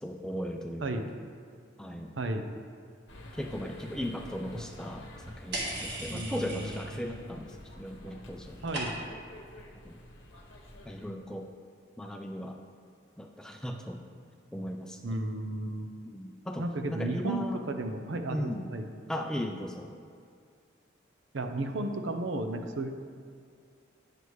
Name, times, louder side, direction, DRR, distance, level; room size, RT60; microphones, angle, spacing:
voice 1, 0.0-1.1 1.8-2.1 3.3-8.6 9.7-10.0 10.9-11.5 12.0-12.6 13.2-14.0 14.5-15.2 16.0-17.6 18.3-18.7 19.1-19.9, equal, 5° left, 3 dB, 0.4 m, -37 dB
voice 2, 2.2-2.5 4.5-4.6 6.1-6.9 8.6-8.9 15.0-15.9 16.6-18.9 21.3-23.0, right 2 dB, 80° right, 6 dB, 0.6 m, -33 dB
sound 1, 3.1-11.1, left 1 dB, 85° left, 0.9 m, -48 dB
sound 2, 5.5-7.1 7.4-7.9 8.2-9.3, right 1 dB, 60° right, 1.6 m, -38 dB
9.6 x 6.8 x 3.1 m, 2.3 s
head